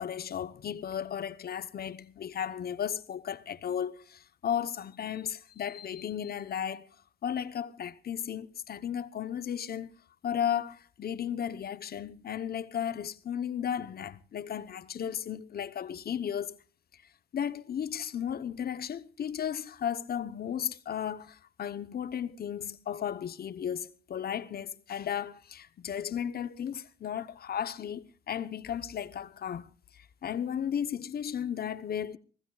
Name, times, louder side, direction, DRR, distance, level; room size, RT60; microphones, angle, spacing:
voice 1, 0.0-6.9 7.2-9.9 10.2-16.5 16.9-17.0 17.3-32.2, left 9 dB, 50° left, 0.9 m, -35 dB
25.0 x 16.0 x 2.3 m
cardioid pair, 90°, 20 cm